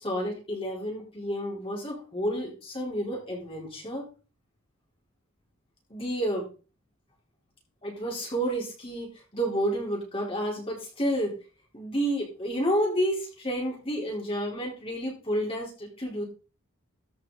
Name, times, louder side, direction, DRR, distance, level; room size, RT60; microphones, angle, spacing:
voice 1, 0.0-4.0 5.9-6.4 7.8-11.4 11.7-16.2, equal, 25° left, -2 dB, 3.7 m, -30 dB
13.5 x 5.8 x 3.9 m, 0.35 s
head